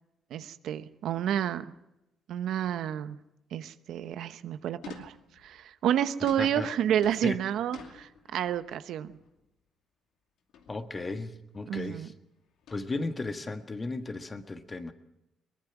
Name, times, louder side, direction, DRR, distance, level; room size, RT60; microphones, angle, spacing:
voice 1, 0.3-1.7 2.3-3.2 3.5-5.1 5.4-9.2 11.7-12.1, right 10 dB, 80° right, 11 dB, 1.0 m, -30 dB
sound 1, 4.8-5.7 6.3-8.8 9.0-9.4 10.5-11.1 11.3-11.7 12.6-13.4, left 7 dB, 80° left, 2.5 m, -50 dB
voice 2, 6.4-6.7 7.2-7.4 10.7-12.1 12.7-14.9, left 3 dB, 25° left, 7 dB, 1.7 m, -35 dB
22.0 x 20.0 x 6.1 m, 0.89 s
cardioid pair, 90°, 0 cm